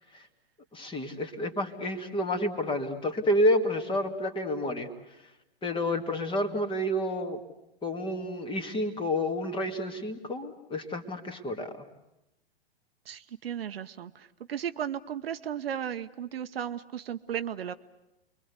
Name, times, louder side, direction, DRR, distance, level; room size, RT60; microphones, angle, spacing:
voice 1, 0.7-4.9 5.6-7.4 7.8-11.7, left 1 dB, 15° left, 7 dB, 2.1 m, -29 dB
voice 2, 13.1-17.7, right 9 dB, 65° right, 10 dB, 1.0 m, -35 dB
29.5 x 22.5 x 8.3 m, 0.91 s
figure-of-eight pair, 105°, 32 cm